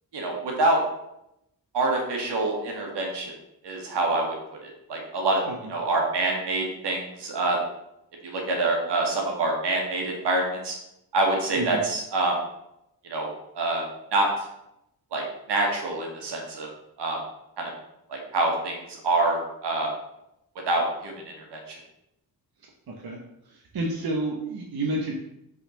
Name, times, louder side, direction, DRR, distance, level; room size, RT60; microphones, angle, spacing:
voice 1, 0.1-0.8 1.7-3.3 3.6-4.3 4.6-5.4 5.7-7.6 8.2-10.7 11.1-12.4 13.1-13.3 13.6-13.8 14.1-14.5 15.1-16.7 17.0-17.2 17.6-17.7 18.1-18.8 19.0-19.9 20.7-21.8, right 2 dB, 85° right, 0 dB, 1.9 m, -26 dB
voice 2, 22.9-23.2 23.5-25.1, right 2 dB, 65° right, -1 dB, 1.2 m, -30 dB
5.5 x 4.2 x 5.7 m, 0.83 s
cardioid pair, 75°, 40 cm